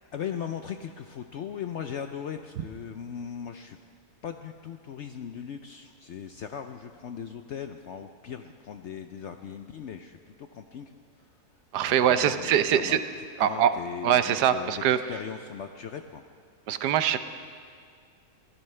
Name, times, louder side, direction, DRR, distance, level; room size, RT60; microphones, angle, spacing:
voice 1, 0.1-3.8 4.2-10.9 11.9-13.0 13.4-16.2, left 8 dB, 65° left, 6 dB, 0.7 m, -38 dB
voice 2, 11.7-13.0 13.4-13.7 14.0-15.0 16.7-17.2, right 9 dB, 80° right, 11 dB, 1.3 m, -23 dB
22.5 x 15.5 x 3.3 m, 2.2 s
omnidirectional pair, 1.7 m